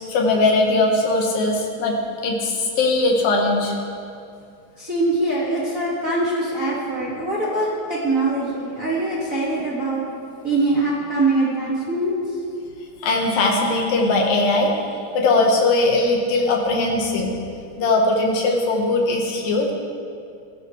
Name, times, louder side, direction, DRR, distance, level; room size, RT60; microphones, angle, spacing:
voice 1, 0.1-2.0 2.2-3.7 13.0-14.7 15.1-17.3 17.8-19.7, left 2 dB, 70° left, 0 dB, 3.0 m, -19 dB
voice 2, 4.8-10.0 10.4-12.4, right 2 dB, 25° right, -7 dB, 2.0 m, -23 dB
20.0 x 14.5 x 3.3 m, 2.4 s
omnidirectional pair, 4.4 m